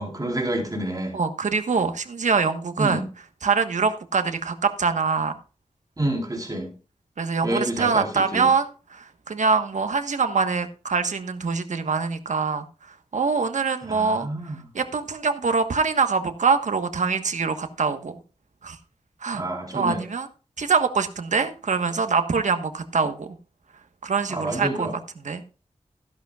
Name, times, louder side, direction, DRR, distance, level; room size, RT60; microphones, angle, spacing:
voice 1, 0.0-1.2 2.8-3.0 6.0-6.7 7.4-8.5 13.9-14.6 19.3-20.0 24.3-25.0, right 1 dB, 30° right, 3.9 m, -28 dB
voice 2, 1.1-3.0 3.4-5.3 7.2-12.7 13.1-18.1 18.6-18.8 19.2-19.4 19.7-20.3 20.6-23.3 24.0-24.9 25.2-25.4, right 5 dB, 80° right, 1.4 m, -24 dB
15.5 x 11.0 x 2.4 m
wide cardioid pair, 90°, 12 cm